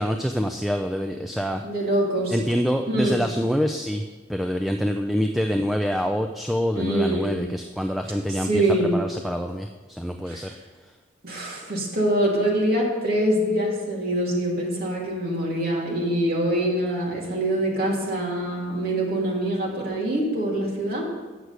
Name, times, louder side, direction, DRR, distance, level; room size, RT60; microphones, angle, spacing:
voice 1, 0.0-1.6 2.3-4.0 4.3-10.5, equal, ahead, 4 dB, 0.3 m, -26 dB
voice 2, 1.6-2.4 2.9-3.2 6.7-7.4 8.4-9.0 10.3-10.5 11.2-21.1, right 1 dB, 50° right, -3 dB, 2.4 m, -24 dB
8.2 x 6.1 x 8.1 m, 1.4 s
head